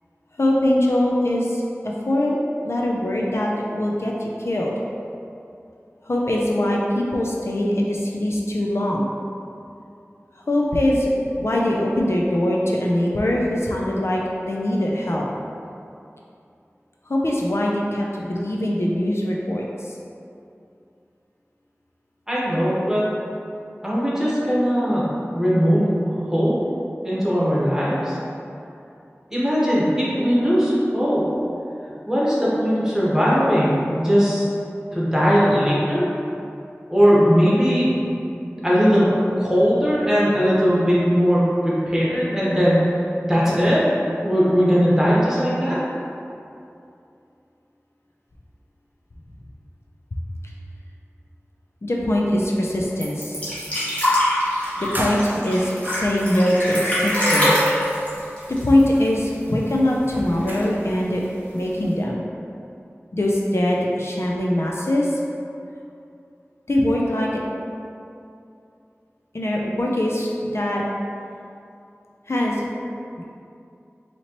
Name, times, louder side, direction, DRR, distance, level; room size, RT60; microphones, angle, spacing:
voice 1, 0.4-2.4 2.6-4.7 6.0-9.1 10.5-11.1 11.3-15.2 17.1-20.0 51.8-53.4 54.8-57.5 58.5-61.2 61.5-62.2 63.1-65.2 66.7-67.3 69.3-70.8 72.3-72.7, left 1 dB, 65° left, -3 dB, 0.4 m, -22 dB
voice 2, 22.3-23.0 23.8-25.0 25.3-26.5 27.0-28.2 29.3-31.2 32.1-34.5 34.9-36.1 36.9-37.9 38.3-39.1 39.4-42.8 43.3-43.8 44.2-45.8, equal, 10° right, -8 dB, 1.1 m, -19 dB
sound 1, 53.0-59.4 59.7-59.8 60.1-60.8 61.6-61.7, left 1 dB, 25° left, 1.2 m, -23 dB
sound 2, 54.6-56.5 57.2-58.3 58.7-60.9, equal, 40° right, 0.4 m, -35 dB
4.2 x 2.9 x 2.9 m, 2.6 s
wide cardioid pair, 40°, 5 cm